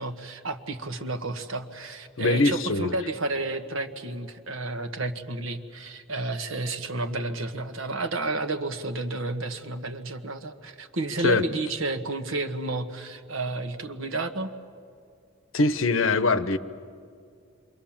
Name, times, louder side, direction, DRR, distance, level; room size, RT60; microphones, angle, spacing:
voice 1, 0.0-14.5, right 2 dB, 75° right, 8 dB, 1.5 m, -31 dB
voice 2, 2.2-2.9 11.2-11.4 15.5-16.6, left 2 dB, 75° left, 12 dB, 1.0 m, -22 dB
28.0 x 24.5 x 7.4 m, 2.3 s
head